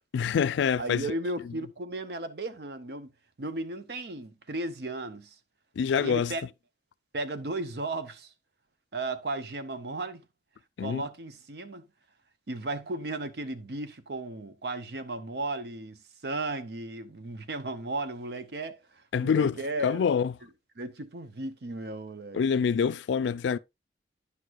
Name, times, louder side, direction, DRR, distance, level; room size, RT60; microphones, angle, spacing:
voice 1, 0.1-1.1 5.8-6.3 10.8-11.1 19.1-19.6 19.8-20.3 22.3-23.6, left 6 dB, 90° left, 0.3 m, -26 dB
voice 2, 0.8-3.1 3.4-5.4 5.9-6.4 7.1-8.3 8.9-10.2 10.8-11.8 12.5-18.8 19.2-20.1 20.8-22.4, right 2 dB, 65° right, 0.7 m, -35 dB
9.8 x 6.3 x 2.4 m
head